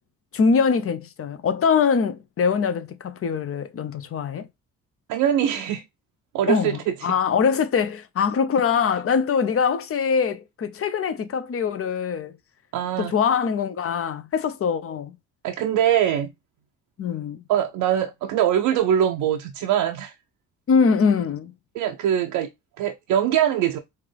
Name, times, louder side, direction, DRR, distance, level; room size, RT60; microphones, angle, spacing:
voice 1, 0.3-4.5 6.5-12.3 13.0-15.1 17.0-17.4 20.7-21.5, left 6 dB, 40° left, 0.7 m, -23 dB
voice 2, 5.1-5.8 6.3-7.1 12.7-13.1 15.4-16.3 17.5-20.2 21.7-22.5 22.8-23.8, right 10 dB, 75° right, 0.6 m, -22 dB
4.3 x 2.6 x 3.2 m
supercardioid pair, 60°, 34 cm